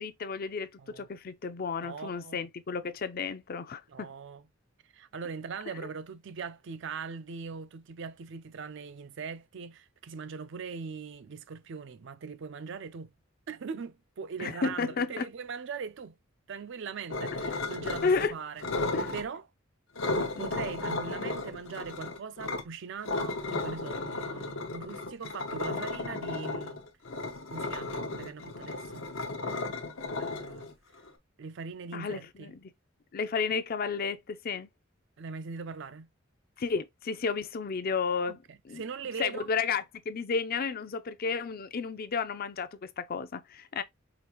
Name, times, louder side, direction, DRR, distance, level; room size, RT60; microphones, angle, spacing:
voice 1, 0.0-4.1 14.4-15.3 18.0-18.3 18.9-19.1 20.4-20.6 31.9-32.7 33.1-34.7 36.6-38.4 38.6-38.8 39.2-43.8, left 5 dB, 50° left, 0.5 m, -32 dB
voice 2, 1.8-2.4 3.9-4.4 4.9-13.1 13.5-16.2 16.5-19.4 20.4-26.9 27.5-29.0 30.2-30.7 31.4-32.5 35.2-36.1 38.3-39.5, right 5 dB, 65° right, 0.5 m, -41 dB
sound 1, 17.1-18.3 18.6-19.2 20.0-22.6 23.0-31.1, left 2 dB, 85° left, 0.9 m, -34 dB
5.0 x 2.4 x 2.9 m
head